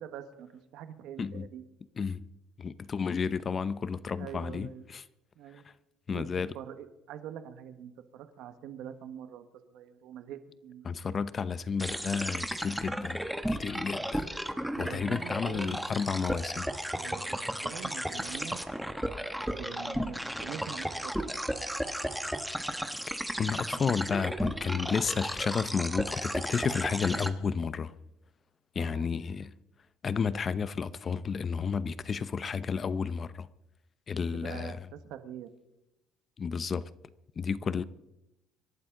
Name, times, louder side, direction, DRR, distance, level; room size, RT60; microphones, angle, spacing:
voice 1, 0.0-1.6 4.2-4.9 5.4-5.6 6.1-6.3 6.5-10.9 14.6-15.9 16.9-18.6 19.5-21.3 28.7-29.2 34.3-35.5, right 9 dB, 75° right, 1.4 m, -44 dB
voice 2, 2.6-5.0 6.1-6.5 10.8-14.3 14.8-16.7 23.4-27.9 28.7-29.5 30.0-33.5 34.1-34.8 36.4-36.8 37.4-37.8, left 6 dB, 35° left, 0.8 m, -32 dB
sound 1, 11.8-27.3, equal, ahead, 1.3 m, -34 dB
26.0 x 11.5 x 3.9 m
cardioid pair, 100°, 0 cm